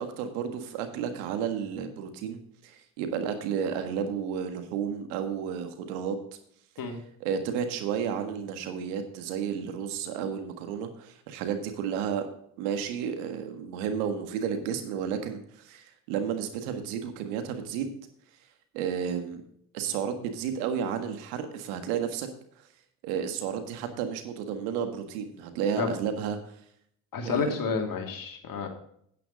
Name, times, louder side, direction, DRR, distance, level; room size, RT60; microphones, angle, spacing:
voice 1, 0.0-6.2 7.2-12.3 12.6-17.9 18.7-19.4 19.7-22.3 23.0-26.5 27.2-27.6, right 7 dB, 85° right, 7 dB, 1.7 m, -32 dB
voice 2, 27.1-28.7, left 5 dB, 50° left, 3 dB, 2.7 m, -30 dB
10.0 x 9.3 x 4.0 m, 0.67 s
hypercardioid pair, 65°, 42 cm